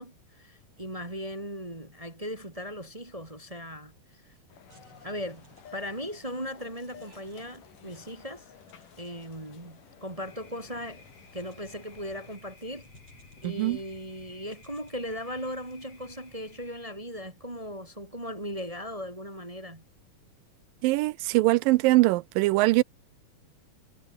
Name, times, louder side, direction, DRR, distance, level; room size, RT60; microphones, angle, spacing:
voice 1, 0.0-4.3 5.0-8.4 9.0-11.0 11.3-12.9 13.4-19.8, equal, 15° right, 1.3 m, -38 dB
sound 1, 4.5-12.4, left 8 dB, 65° left, 4.0 m, -54 dB
sound 2, 4.7-16.4, right 3 dB, 40° right, 8.8 m, -64 dB
Thunder, 10.2-17.0, left 4 dB, 45° left, 6.5 m, -55 dB
voice 2, 13.4-13.8 20.8-22.8, right 20 dB, 80° right, 2.2 m, -22 dB
omnidirectional pair, 4.2 m